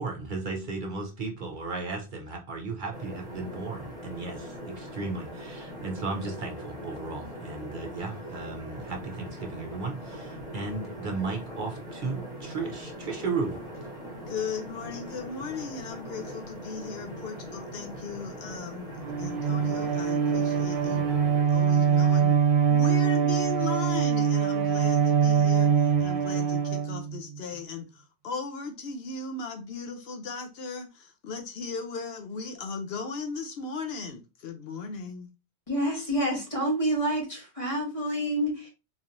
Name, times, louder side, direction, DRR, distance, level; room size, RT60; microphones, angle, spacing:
voice 1, 0.0-13.6, right 3 dB, 55° right, 0.9 m, -35 dB
sound 1, 2.9-21.4, equal, 5° right, 1.3 m, -41 dB
voice 2, 14.3-21.0 21.4-22.4 22.7-35.3, left 5 dB, 70° left, 0.8 m, -37 dB
Bowed string instrument, 19.0-27.4, right 7 dB, 75° right, 0.9 m, -23 dB
voice 3, 35.7-38.7, right 1 dB, 30° left, 1.6 m, -28 dB
3.9 x 3.0 x 2.6 m
omnidirectional pair, 1.1 m